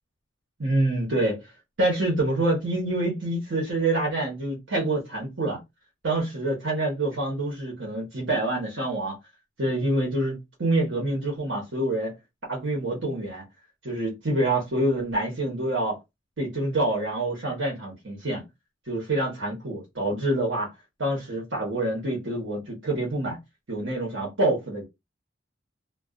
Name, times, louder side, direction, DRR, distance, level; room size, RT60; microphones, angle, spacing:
voice 1, 0.6-1.5 1.8-5.6 6.0-9.2 9.6-12.1 12.5-13.4 13.8-16.0 16.4-18.4 18.9-20.7 21.0-23.4 23.7-24.8, right 1 dB, 90° right, 1.0 m, -26 dB
2.3 x 2.3 x 2.4 m
head